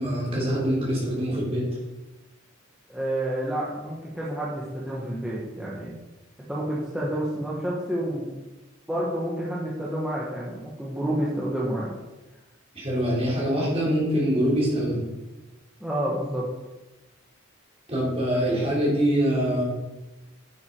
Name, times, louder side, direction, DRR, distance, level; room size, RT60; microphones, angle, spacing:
voice 1, 0.0-1.7 12.8-15.0 17.9-19.6, equal, 30° right, -5 dB, 3.7 m, -24 dB
voice 2, 2.9-5.9 6.5-8.4 8.9-11.9 15.8-16.5, right 1 dB, 5° right, -7 dB, 1.5 m, -29 dB
9.4 x 7.2 x 4.7 m, 1.1 s
head